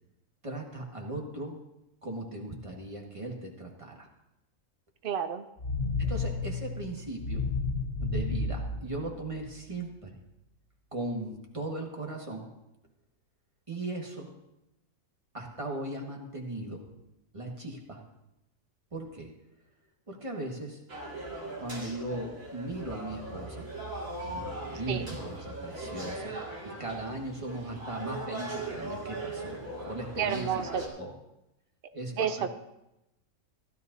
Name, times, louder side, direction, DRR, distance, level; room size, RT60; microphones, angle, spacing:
voice 1, 0.4-1.6 2.0-4.1 6.0-7.5 8.0-10.1 10.9-12.5 13.7-14.3 15.3-16.8 17.3-18.0 18.9-19.3 20.1-20.8 21.6-23.7 24.2-26.4 26.6-30.6 31.0-31.1 31.9-32.5, right 2 dB, 20° right, 0 dB, 1.6 m, -38 dB
voice 2, 5.0-5.4 24.9-25.0 30.2-30.8 32.2-32.5, right 8 dB, 85° right, 9 dB, 0.4 m, -30 dB
sound 1, 5.6-9.6, left 3 dB, 40° left, 2.7 m, -32 dB
sound 2, 20.9-30.9, right 2 dB, 60° right, 2.5 m, -39 dB
15.5 x 12.0 x 2.7 m, 0.90 s
omnidirectional pair, 1.6 m